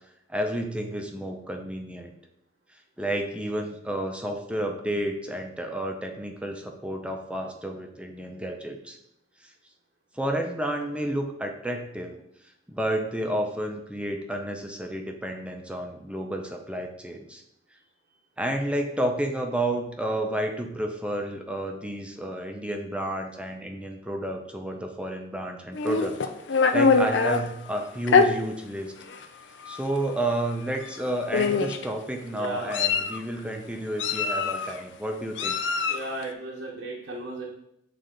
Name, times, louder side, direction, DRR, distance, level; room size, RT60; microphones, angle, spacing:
voice 1, 0.3-2.1 3.0-9.0 9.4-9.5 10.1-12.1 12.7-17.4 18.4-26.2 26.7-28.9 29.7-35.6, right 1 dB, 5° right, 3 dB, 0.6 m, -31 dB
Meow, 25.7-27.4 28.1-28.3 29.1-29.2 29.6-29.8 30.8-31.0 31.3-31.8 32.4-33.2 34.0-34.7 35.4-36.1, left 4 dB, 80° left, 0.5 m, -23 dB
voice 2, 32.3-32.9 35.9-37.4, right 2 dB, 85° right, -4 dB, 1.0 m, -35 dB
8.0 x 3.3 x 3.9 m, 0.77 s
head